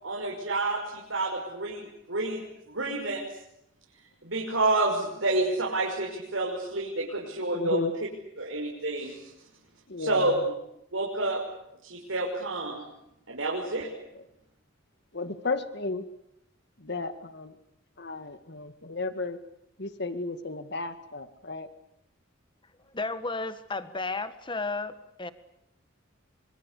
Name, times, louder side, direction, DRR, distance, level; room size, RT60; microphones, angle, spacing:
voice 1, 0.0-2.4 2.7-3.2 4.2-7.8 8.4-9.3 10.0-10.4 10.9-11.4 11.8-12.9 13.3-13.9, right 2 dB, 75° right, -2 dB, 6.1 m, -29 dB
voice 2, 7.5-7.9 9.9-10.4 14.1-14.2 15.1-16.0 16.8-17.5 18.0-19.4 19.8-21.7, left 3 dB, 55° left, 10 dB, 2.0 m, -34 dB
voice 3, 22.9-25.3, left 3 dB, 25° left, 11 dB, 1.7 m, -33 dB
26.0 x 25.5 x 8.5 m, 0.82 s
head